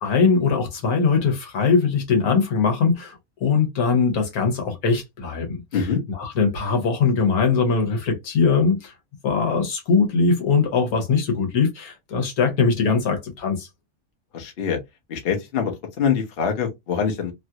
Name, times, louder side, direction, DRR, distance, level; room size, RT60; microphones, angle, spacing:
voice 1, 0.0-5.6 6.1-8.9 9.2-13.7, left 5 dB, 75° left, 1.4 m, -21 dB
voice 2, 14.3-14.8 15.1-15.7 16.0-17.3, left 7 dB, 45° left, 0.9 m, -24 dB
3.1 x 2.4 x 2.7 m
omnidirectional pair, 1.6 m